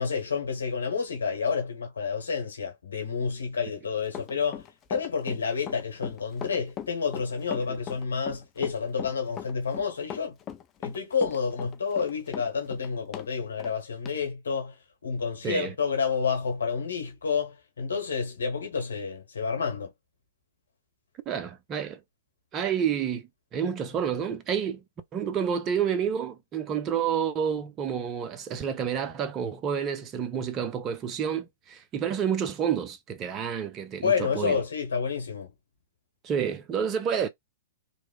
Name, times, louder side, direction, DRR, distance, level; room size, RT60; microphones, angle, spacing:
voice 1, 0.0-4.6 4.9-10.4 10.8-14.8 15.0-19.9 34.0-35.5, left 5 dB, 70° left, 1.1 m, -29 dB
Run, 4.1-13.3 13.6-13.7 14.1-14.2, left 10 dB, 25° left, 0.4 m, -39 dB
voice 2, 21.3-22.0 22.5-24.8 25.1-34.6 36.2-37.3, right 8 dB, 25° right, 0.5 m, -29 dB
3.0 x 2.0 x 2.2 m
figure-of-eight pair, 105°, 0 cm